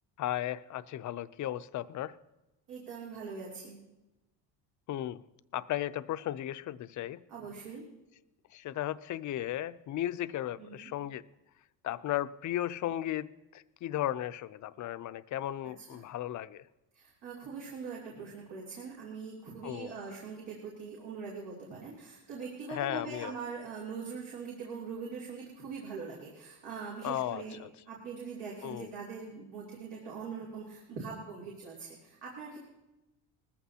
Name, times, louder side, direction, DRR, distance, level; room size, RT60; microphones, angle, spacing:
voice 1, 0.2-2.2 4.9-5.2 5.5-7.2 8.5-11.2 11.8-16.6 19.6-20.0 22.7-23.3 27.0-27.7 28.6-28.9, left 12 dB, 45° left, 13 dB, 0.5 m, -35 dB
voice 2, 2.7-3.8 7.3-7.8 10.6-10.9 15.6-16.0 16.9-27.6 27.9-32.6, right 5 dB, 80° right, -4 dB, 3.1 m, -42 dB
20.0 x 14.5 x 2.8 m, 1.0 s
cardioid pair, 125°, 41 cm